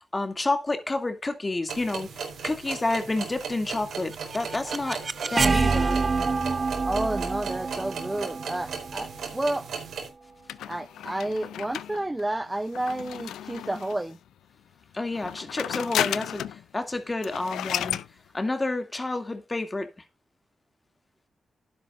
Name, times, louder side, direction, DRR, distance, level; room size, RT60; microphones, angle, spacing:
voice 1, 0.1-2.1 2.4-5.0 5.3-6.0 14.9-18.0 18.3-19.9, left 2 dB, 30° left, 2.5 m, -29 dB
sound 1, 1.7-10.1, right 6 dB, 80° right, 4.0 m, -37 dB
sound 2, 3.9-9.8, right 4 dB, 45° right, 0.9 m, -27 dB
voice 2, 6.8-9.7 10.7-14.2, right 1 dB, 20° right, 0.7 m, -30 dB
sound 3, 10.5-14.1 15.1-16.6 16.9-17.0 17.2-18.1, left 11 dB, 90° left, 0.5 m, -33 dB
12.0 x 10.5 x 2.6 m
supercardioid pair, 50°, 0 cm